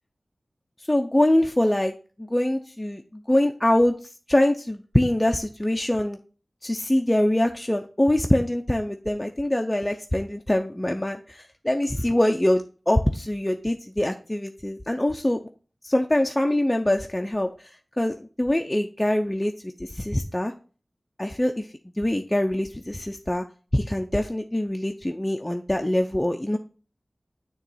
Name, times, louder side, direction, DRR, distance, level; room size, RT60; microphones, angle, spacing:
voice 1, 0.8-4.0 4.3-6.2 6.6-15.4 15.8-19.5 19.8-20.5 21.2-21.7 22.0-23.4 23.7-26.6, left 1 dB, 20° left, 4 dB, 0.5 m, -24 dB
7.0 x 3.0 x 5.6 m, 0.37 s
wide cardioid pair, 45°, 0 cm